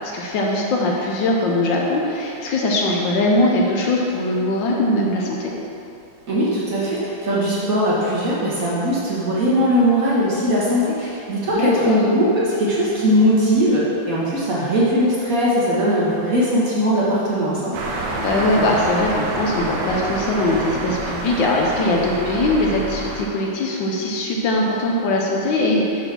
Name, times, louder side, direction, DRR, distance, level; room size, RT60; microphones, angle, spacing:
voice 1, 0.0-5.5 11.5-12.0 18.2-26.1, left 2 dB, 70° left, -1 dB, 1.4 m, -21 dB
voice 2, 6.3-17.7, equal, 45° right, -8 dB, 1.8 m, -19 dB
sound 1, 17.7-23.3, right 2 dB, 75° right, 1.5 m, -27 dB
6.6 x 4.3 x 5.9 m, 2.8 s
omnidirectional pair, 2.2 m